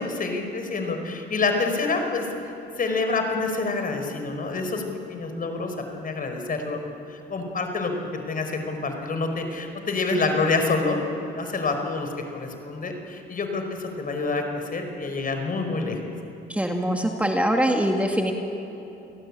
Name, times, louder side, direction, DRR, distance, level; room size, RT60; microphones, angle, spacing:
voice 1, 0.0-2.3 2.8-4.8 5.1-6.8 7.1-11.0 11.4-16.0, left 3 dB, 45° left, 5 dB, 5.1 m, -27 dB
voice 2, 16.5-18.3, equal, 5° right, 2 dB, 2.2 m, -23 dB
29.0 x 18.5 x 8.8 m, 3.0 s
cardioid pair, 90°, 20 cm